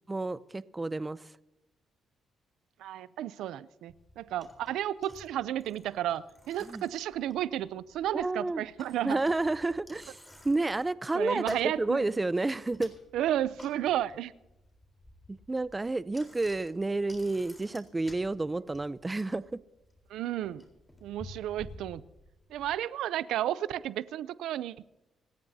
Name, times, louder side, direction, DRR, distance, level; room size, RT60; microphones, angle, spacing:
voice 1, 0.1-1.2 6.6-6.8 8.1-8.6 9.0-10.2 10.4-12.9 15.3-19.6, right 2 dB, 20° right, 16 dB, 0.6 m, -30 dB
voice 2, 2.8-9.2 11.1-12.1 13.1-14.3 20.1-20.6 21.0-22.0 22.5-24.8, right 12 dB, 85° right, 17 dB, 0.5 m, -32 dB
Bicycle, 3.9-22.7, left 1 dB, 10° left, 3.9 m, -54 dB
27.0 x 14.5 x 2.8 m, 0.97 s
cardioid pair, 90°, 0 cm